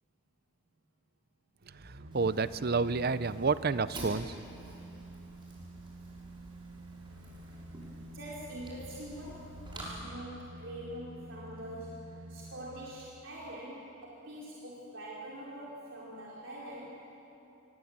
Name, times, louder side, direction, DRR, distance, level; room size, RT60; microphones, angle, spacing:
sound 1, 1.6-13.2 13.6-13.7, right 1 dB, 90° right, 1.7 m, -49 dB
Fire, 2.1-9.9, right 1 dB, 25° right, 6.6 m, -49 dB
voice 1, 2.1-4.3, right 4 dB, 50° right, 15 dB, 0.7 m, -29 dB
voice 2, 8.1-12.0 12.3-17.0, right 1 dB, 65° right, -6 dB, 4.6 m, -44 dB
27.5 x 23.5 x 8.8 m, 2.9 s
head